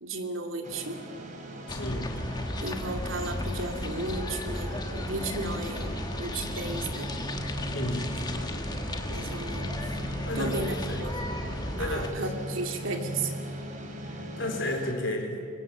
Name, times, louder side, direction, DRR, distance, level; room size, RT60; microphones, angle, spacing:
voice 1, 0.0-1.0 2.6-7.1 9.1-9.8 10.4-11.2 11.8-13.3, right 2 dB, 75° right, 4 dB, 2.5 m, -34 dB
sound 1, 0.6-14.9, right 1 dB, 40° right, 3.0 m, -39 dB
voice 2, 1.7-2.1 7.7-8.1 10.3-10.6 10.9-11.0 11.7-12.3 14.4-15.4, left 1 dB, 60° left, 3 dB, 3.9 m, -32 dB
sound 2, 1.7-12.1, left 1 dB, 20° left, 1.2 m, -35 dB
23.5 x 22.0 x 7.6 m, 2.5 s
head